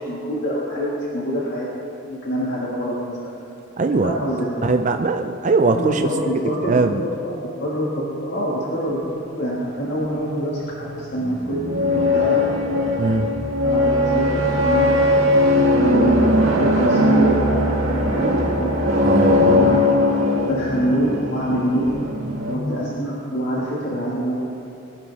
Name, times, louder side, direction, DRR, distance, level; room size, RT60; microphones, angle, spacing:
voice 1, 0.0-1.7 2.1-3.3 4.0-4.7 5.7-12.5 13.6-15.1 15.8-16.2 16.6-18.3 18.6-18.8 19.4-19.8 20.4-21.9 22.5-24.4, equal, 60° left, -5 dB, 1.8 m, -25 dB
voice 2, 3.8-4.1 4.6-6.0 6.6-7.0 13.0-13.3 19.0-19.8, right 3 dB, 40° right, 6 dB, 0.4 m, -20 dB
sound 1, 10.9-22.6, left 1 dB, 85° right, 1.7 m, -19 dB
21.0 x 11.5 x 3.4 m, 2.7 s
head